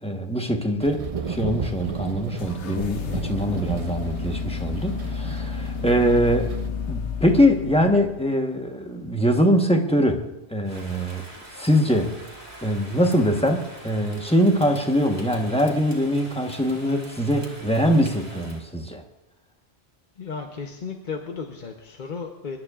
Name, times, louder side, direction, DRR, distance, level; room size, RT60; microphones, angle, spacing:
voice 1, 0.0-6.5 6.9-10.2 10.5-11.2 11.5-12.1 12.6-19.0, equal, 5° left, 3 dB, 1.1 m, -22 dB
sound 1, 0.8-6.7, right 6 dB, 40° right, 0.6 m, -34 dB
sound 2, 2.4-8.3, left 5 dB, 90° left, 1.0 m, -31 dB
Rain, 10.6-18.6, right 1 dB, 25° right, 2.3 m, -44 dB
voice 2, 20.2-22.6, left 5 dB, 45° left, 2 dB, 1.0 m, -34 dB
26.0 x 12.0 x 2.4 m, 0.99 s
omnidirectional pair, 1.1 m